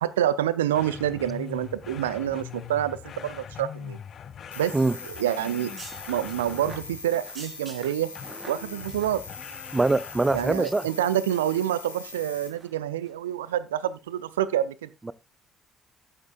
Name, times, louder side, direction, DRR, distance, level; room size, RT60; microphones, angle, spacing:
voice 1, 0.0-4.0 4.6-4.7 5.2-5.7 6.1-8.1 8.5-9.2 10.3-14.9, right 11 dB, 75° right, 0.4 m, -27 dB
sound 1, 0.7-7.2 8.2-10.7, left 8 dB, 45° left, 0.7 m, -42 dB
sound 2, 4.5-12.5, left 3 dB, 85° left, 1.5 m, -42 dB
sound 3, 5.3-10.0 10.3-10.4 10.9-11.6 12.0-12.2 12.5-12.7 13.0-13.1, right 2 dB, 35° right, 4.3 m, -47 dB
voice 2, 9.7-10.9 15.0-15.1, right 2 dB, 20° right, 0.5 m, -23 dB
13.0 x 8.7 x 2.3 m
figure-of-eight pair, 50°, 0 cm